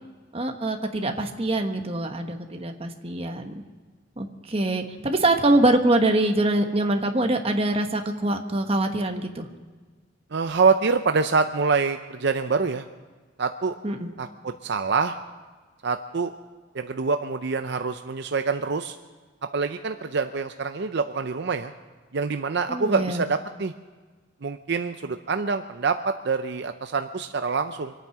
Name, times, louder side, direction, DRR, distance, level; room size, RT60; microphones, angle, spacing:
voice 1, 0.3-3.5 4.2-9.5 13.8-14.1 22.7-23.2, right 2 dB, 30° right, 5 dB, 1.3 m, -24 dB
voice 2, 10.3-12.9 13.4-13.7 14.2-15.2 15.8-16.3 16.7-19.0 19.5-21.7 22.1-23.7 24.4-27.9, right 4 dB, 60° right, 8 dB, 0.6 m, -25 dB
25.5 x 9.2 x 5.9 m, 1.4 s
head